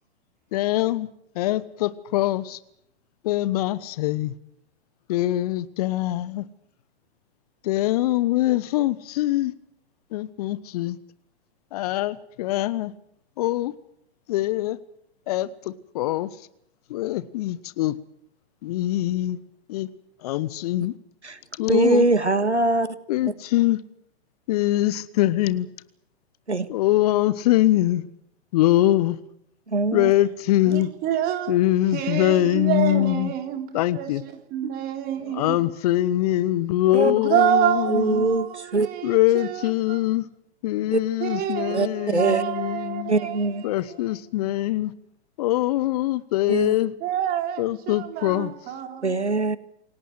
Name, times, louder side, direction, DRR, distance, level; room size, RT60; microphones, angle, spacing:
voice 1, 0.5-1.1 1.3-2.6 3.2-4.3 5.1-6.4 7.6-9.5 10.1-11.0 11.7-12.9 13.4-13.7 14.3-14.8 15.3-16.3 16.9-18.0 18.6-19.4 19.7-19.9 20.2-20.9 21.6-22.1 23.1-23.8 24.5-25.7 26.7-28.0 28.5-29.2 29.9-30.9 31.5-33.3 33.7-34.2 35.2-38.4 39.0-40.3 40.6-43.1 43.6-44.9 45.4-46.9 47.6-48.5, left 15 dB, 35° left, 1.1 m, -23 dB
voice 2, 21.7-22.9 26.5-26.7 29.7-30.1 36.9-37.1 37.9-38.9 40.9-41.0 41.7-42.4 43.1-43.6 46.5-46.8 49.0-49.6, right 2 dB, 85° right, 1.8 m, -22 dB
voice 3, 30.7-31.6 31.9-35.6 37.0-40.0 41.2-43.4 47.0-49.1, right 11 dB, 25° right, 3.9 m, -27 dB
28.0 x 18.0 x 7.9 m
figure-of-eight pair, 110°, 33 cm